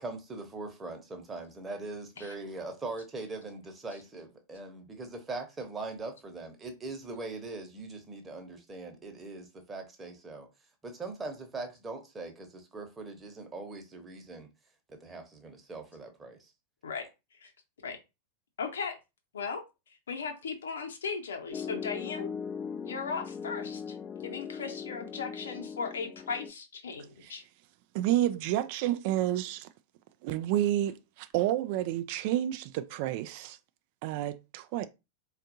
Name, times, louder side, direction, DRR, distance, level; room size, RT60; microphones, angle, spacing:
voice 1, 0.0-10.5 10.8-14.5 14.9-16.5, right 3 dB, 15° right, 1.0 m, -41 dB
voice 2, 18.6-19.0 19.3-19.6 19.9-22.3 22.8-24.0 24.2-27.4, left 5 dB, 65° left, 0.9 m, -37 dB
Piano, 21.5-26.5, left 7 dB, 25° left, 0.4 m, -39 dB
voice 3, 27.9-29.7 30.2-33.6 34.0-34.9, right 13 dB, 45° right, 0.3 m, -30 dB
4.2 x 2.5 x 2.7 m
figure-of-eight pair, 90°, 0 cm